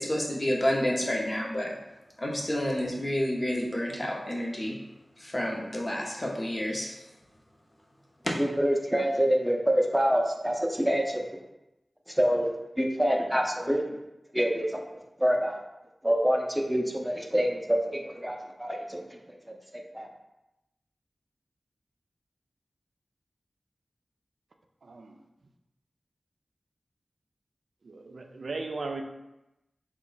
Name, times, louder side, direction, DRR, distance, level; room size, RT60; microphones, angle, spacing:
voice 1, 0.0-1.7 2.2-4.7 5.2-6.9 8.2-8.3, left 1 dB, 35° left, -2 dB, 0.8 m, -29 dB
voice 2, 8.4-11.2 12.1-13.8 14.3-14.8 15.2-15.6 16.0-19.0 19.7-20.1, equal, 5° right, 1 dB, 0.5 m, -26 dB
voice 3, 24.8-25.2 27.8-29.0, right 3 dB, 85° right, 4 dB, 0.3 m, -36 dB
3.5 x 2.2 x 3.9 m, 0.94 s
wide cardioid pair, 60°, 0 cm